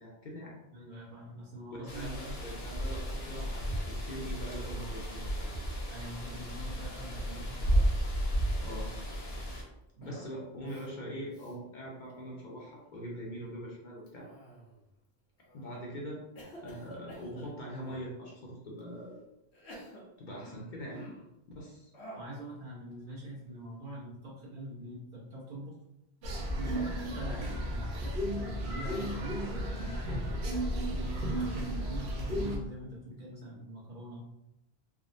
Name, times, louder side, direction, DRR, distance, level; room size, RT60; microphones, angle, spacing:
voice 1, 0.0-0.6 1.8-5.5 8.6-8.9 10.0-14.3 15.5-16.2 16.6-19.2 20.2-21.0 21.6-21.9 27.2-27.4 30.9-31.2, equal, 55° left, -3 dB, 0.7 m, -42 dB
voice 2, 0.7-2.4 5.9-7.8 10.0-10.2 22.2-25.8 26.6-30.8 31.4-34.2, right 1 dB, 55° right, -5 dB, 1.0 m, -44 dB
sound 1, 1.9-9.6, right 1 dB, 70° left, 1.0 m, -33 dB
Cough, 6.8-8.0 8.3-9.0 10.0-10.4 10.7-10.9 11.3-11.5 12.1-12.5 14.1-14.9 15.5-15.8 16.4-18.1 18.8-18.9 19.5-21.3 21.9-22.4, right 1 dB, 85° left, 1.1 m, -51 dB
sound 2, 26.2-32.6, equal, 80° right, 0.9 m, -34 dB
3.5 x 2.0 x 2.5 m, 0.91 s
omnidirectional pair, 1.1 m